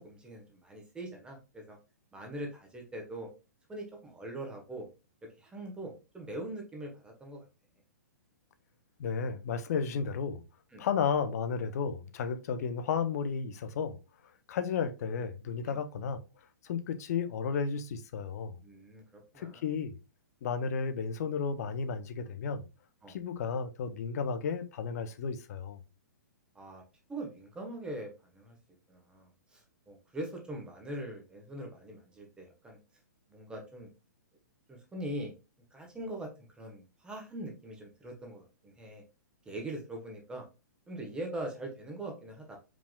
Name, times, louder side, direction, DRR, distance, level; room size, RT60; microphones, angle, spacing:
voice 1, 0.0-1.8 2.1-3.3 3.7-4.9 5.4-7.4 10.7-10.8 15.6-15.8 18.6-19.6 23.0-23.1 26.5-26.8 27.1-28.6 28.9-32.8 33.3-33.9 34.7-35.3 35.7-36.3 36.6-39.0 39.4-40.4 40.9-42.6, right 1 dB, 10° right, 1.0 m, -42 dB
voice 2, 9.0-10.4 10.8-14.0 14.5-16.2 16.6-18.6 19.3-19.9 20.4-22.6 23.1-25.8, left 6 dB, 55° left, 0.6 m, -33 dB
4.9 x 3.5 x 2.2 m
hypercardioid pair, 135°, 10 cm